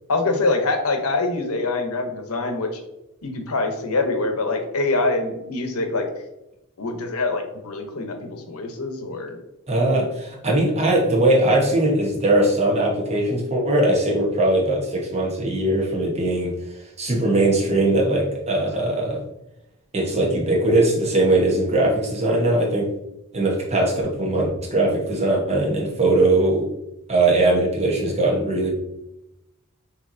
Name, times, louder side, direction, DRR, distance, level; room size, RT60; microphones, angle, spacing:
voice 1, 0.1-2.7 3.2-6.1 6.8-9.4, left 3 dB, 85° left, 5 dB, 0.8 m, -24 dB
voice 2, 9.7-16.5 17.0-19.2 19.9-22.9 23.3-26.7 27.1-28.7, right 2 dB, 30° right, -2 dB, 1.1 m, -20 dB
6.5 x 2.9 x 2.7 m, 0.88 s
head